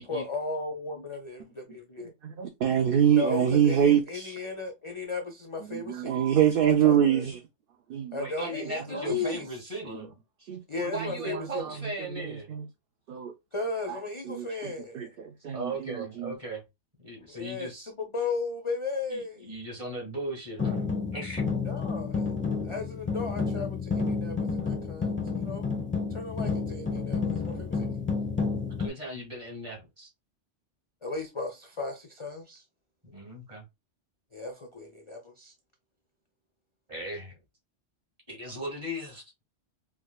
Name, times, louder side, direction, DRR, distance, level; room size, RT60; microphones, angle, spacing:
voice 1, 0.1-2.1 3.1-6.2 6.7-7.2 8.1-9.5 10.7-11.6 13.5-15.1 17.3-19.5 21.6-22.3 22.6-25.6 26.1-27.9 31.0-32.6 34.3-35.5, left 3 dB, 40° left, 0.5 m, -35 dB
voice 2, 2.0-4.3 5.7-7.4 7.9-9.2 9.8-10.1 10.4-12.7 13.1-13.3 13.9-16.3, right 9 dB, 60° right, 0.6 m, -27 dB
voice 3, 8.2-10.1 10.8-12.5 15.5-16.6 17.0-17.9 19.1-20.9 21.1-21.4 28.8-30.1 33.0-33.6 36.9-37.4 38.3-39.2, right 1 dB, 30° right, 1.9 m, -37 dB
sound 1, 20.6-28.9, left 4 dB, 10° left, 0.7 m, -30 dB
4.7 x 2.2 x 2.2 m
omnidirectional pair, 1.2 m